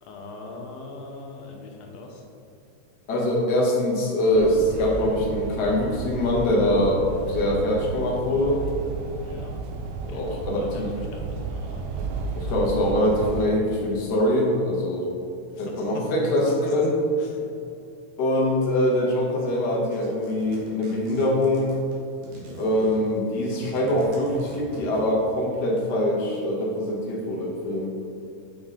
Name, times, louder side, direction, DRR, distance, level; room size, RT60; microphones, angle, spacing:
voice 1, 0.0-2.2 9.1-9.5 10.1-12.1 15.5-16.0 16.5-16.7 17.2-17.5 21.2-21.3, left 3 dB, 75° left, 1 dB, 1.9 m, -41 dB
voice 2, 3.1-8.6 10.1-10.9 12.3-15.1 15.6-16.9 18.2-21.7 22.5-27.9, left 1 dB, 55° left, -3 dB, 1.3 m, -23 dB
sound 1, 4.3-13.5, right 4 dB, 80° right, 1.9 m, -33 dB
sound 2, 19.9-25.4, equal, 60° right, 2.3 m, -42 dB
7.1 x 5.4 x 3.7 m, 2.5 s
omnidirectional pair, 3.3 m